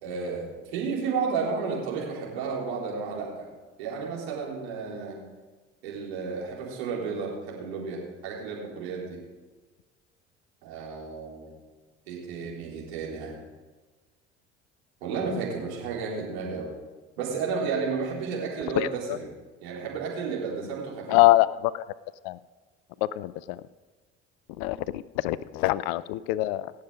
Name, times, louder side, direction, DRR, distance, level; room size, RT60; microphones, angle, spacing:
voice 1, 0.0-3.5 3.8-5.2 5.8-9.2 10.6-11.5 12.1-13.4 15.0-16.7 17.2-19.3 19.6-21.2, right 5 dB, 70° right, -4 dB, 4.0 m, -32 dB
voice 2, 21.1-21.8 22.2-22.4 23.0-23.6 24.6-26.8, left 17 dB, 55° left, 19 dB, 0.5 m, -24 dB
17.5 x 7.2 x 5.0 m, 1.3 s
figure-of-eight pair, 60°, 34 cm